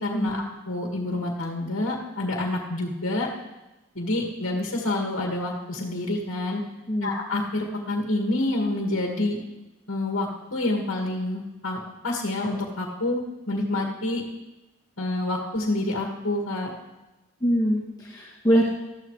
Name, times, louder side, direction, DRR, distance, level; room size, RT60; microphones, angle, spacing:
voice 1, 0.0-3.3 4.0-6.6 7.0-9.4 9.9-11.8 12.0-13.2 13.5-14.2 15.0-16.7, left 2 dB, 70° left, 0 dB, 2.0 m, -27 dB
voice 2, 17.4-18.6, equal, 20° left, -7 dB, 2.3 m, -23 dB
20.0 x 14.0 x 3.3 m, 1.0 s
head